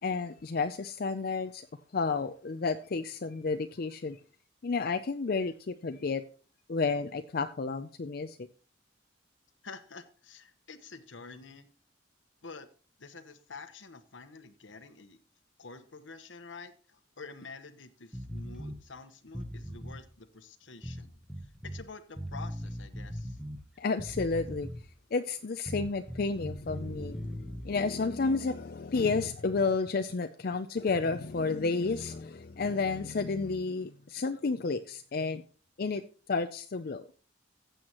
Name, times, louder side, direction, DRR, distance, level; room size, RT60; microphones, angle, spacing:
voice 1, 0.0-1.7 1.9-4.2 4.6-6.2 6.7-8.4 23.8-24.7 25.1-35.4 35.8-36.0 36.3-37.1, left 4 dB, 50° left, 9 dB, 0.5 m, -31 dB
voice 2, 9.6-11.7 12.4-12.7 13.0-15.2 15.6-23.4, left 4 dB, 85° left, 10 dB, 1.1 m, -48 dB
sound 1, 18.1-18.8 19.3-20.0 20.8-21.8 22.2-23.6 24.0-24.9 25.7-27.7, equal, 5° right, 0.9 m, -40 dB
15.0 x 7.8 x 3.0 m, 0.38 s
head